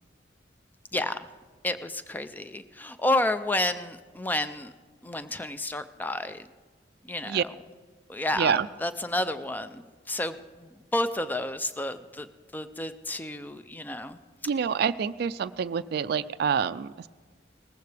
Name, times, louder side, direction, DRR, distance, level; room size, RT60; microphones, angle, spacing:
voice 1, 1.6-4.7 5.0-6.5 7.0-7.5 8.1-12.3 12.5-14.2, left 1 dB, 10° left, 11 dB, 0.4 m, -30 dB
voice 2, 8.3-8.7 14.5-17.1, right 7 dB, 60° right, 13 dB, 0.3 m, -27 dB
19.0 x 15.0 x 3.4 m, 1.4 s
head